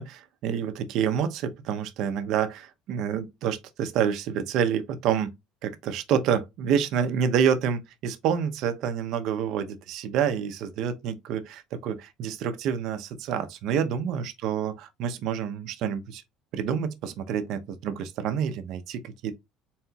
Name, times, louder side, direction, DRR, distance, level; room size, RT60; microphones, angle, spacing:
voice 1, 0.0-5.3 5.6-16.2 16.5-19.4, right 8 dB, 55° right, 0.6 m, -28 dB
4.2 x 3.9 x 2.3 m
cardioid pair, 160°, 0 cm